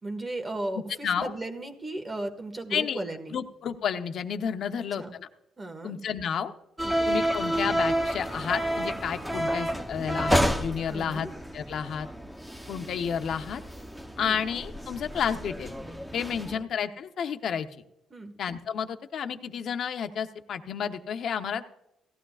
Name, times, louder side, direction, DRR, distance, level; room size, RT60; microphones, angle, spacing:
voice 1, 0.0-3.4 5.0-5.1 5.6-6.0 6.8-7.0 10.9-11.3 14.2-14.4 18.1-18.3, right 2 dB, 25° right, 5 dB, 1.8 m, -35 dB
voice 2, 3.3-5.3 5.8-6.5 7.1-11.3 11.5-12.1 12.7-13.6 14.2-15.7 16.1-17.7 18.4-21.6, left 7 dB, 65° left, 7 dB, 0.9 m, -31 dB
sound 1, 6.8-16.6, equal, 5° right, 1.0 m, -30 dB
17.0 x 12.5 x 2.5 m, 0.87 s
cardioid pair, 90°, 0 cm